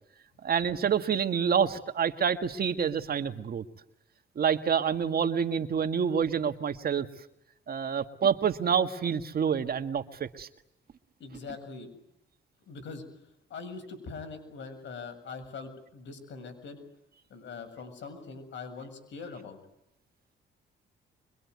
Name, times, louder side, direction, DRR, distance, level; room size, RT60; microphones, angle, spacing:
voice 1, 0.4-3.6 4.4-7.1 7.7-10.5, right 7 dB, 50° right, 8 dB, 1.8 m, -27 dB
voice 2, 11.2-11.9 12.7-13.0 13.5-16.8 17.3-19.6, left 4 dB, 70° left, 8 dB, 7.4 m, -42 dB
25.0 x 23.5 x 9.6 m, 0.82 s
cardioid pair, 90°, 20 cm